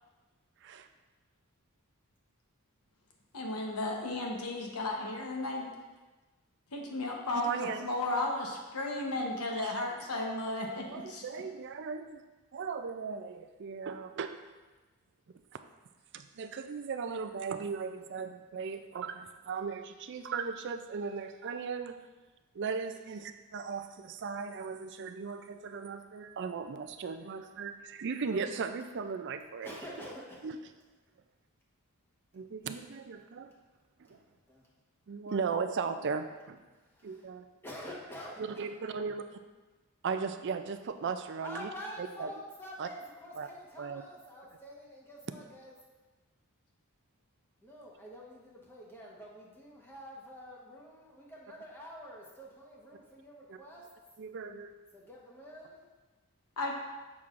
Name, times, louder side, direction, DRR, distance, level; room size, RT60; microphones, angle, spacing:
voice 1, 3.3-5.7 6.7-11.2 56.6-56.7, left 2 dB, 85° left, 0 dB, 1.0 m, -34 dB
voice 2, 7.4-7.9 9.6-9.8 10.7-12.2 12.5-14.3 16.1-22.0 22.5-29.7 30.4-30.6 32.3-33.5 34.0-34.2 35.1-36.6 37.0-37.4 38.6-39.4 40.0-41.7 42.0-42.3 42.8-42.9 43.4-43.5 43.8-44.0 53.5-53.6 54.2-54.7, right 5 dB, 50° right, 8 dB, 0.4 m, -37 dB
voice 3, 29.6-30.5 34.0-34.7 36.7-37.3 37.6-38.7 41.4-45.7 47.6-53.9 54.9-55.9, equal, 10° left, -4 dB, 1.1 m, -47 dB
7.0 x 6.2 x 2.5 m, 1.2 s
head